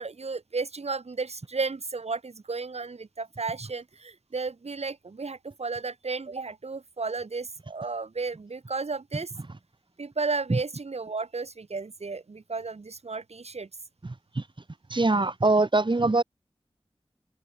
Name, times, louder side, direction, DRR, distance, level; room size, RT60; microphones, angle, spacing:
voice 1, 0.0-9.3 10.0-13.7, right 4 dB, 85° right, 2.0 m, -33 dB
voice 2, 14.9-16.2, right 2 dB, 50° right, 2.4 m, -22 dB
wide cardioid pair, 50°, 11 cm